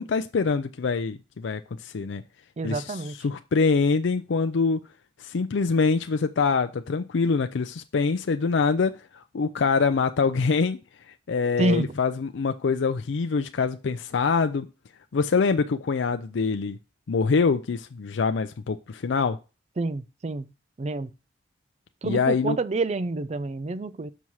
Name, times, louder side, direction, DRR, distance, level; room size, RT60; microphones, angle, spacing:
voice 1, 0.0-2.2 2.6-4.8 5.2-10.8 11.3-14.7 15.1-16.8 17.1-19.4 22.0-22.6, left 4 dB, 85° left, 0.5 m, -24 dB
voice 2, 2.6-3.2 11.6-11.9 19.8-20.5 20.8-21.1 22.0-24.1, right 3 dB, 35° right, 0.4 m, -28 dB
6.1 x 5.6 x 4.6 m
head